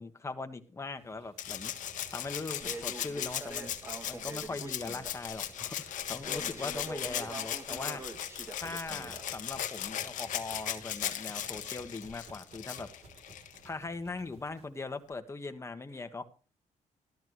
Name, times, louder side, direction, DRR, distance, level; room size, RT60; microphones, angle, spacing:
voice 1, 0.0-1.7 2.1-3.7 4.1-8.0 8.6-12.9 13.6-16.2, left 3 dB, 20° left, 8 dB, 1.5 m, -40 dB
sound 1, 1.0-14.7, right 3 dB, 55° right, 3.5 m, -57 dB
Rattle (instrument), 1.4-13.7 15.1-15.2, left 10 dB, 80° left, 1.3 m, -38 dB
Crackle, 2.6-9.6, right 2 dB, 20° right, 1.8 m, -45 dB
13.0 x 13.0 x 3.2 m, 0.36 s
cardioid pair, 120°, 13 cm